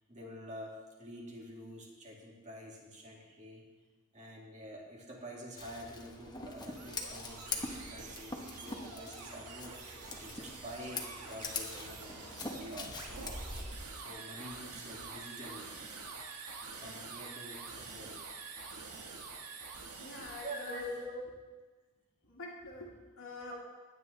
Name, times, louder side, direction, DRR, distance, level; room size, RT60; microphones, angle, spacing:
voice 1, 0.1-3.6 4.1-13.2 14.0-15.8 16.7-18.2 20.4-21.2 23.5-23.6, equal, 35° right, -2 dB, 2.3 m, -47 dB
Scissors, 5.6-13.7, left 3 dB, 20° left, 1.1 m, -43 dB
sound 1, 6.4-21.0, right 4 dB, 85° right, 1.6 m, -47 dB
voice 2, 20.0-20.8 22.2-23.6, left 2 dB, 65° left, -4 dB, 1.9 m, -46 dB
16.5 x 10.0 x 3.3 m, 1.3 s
head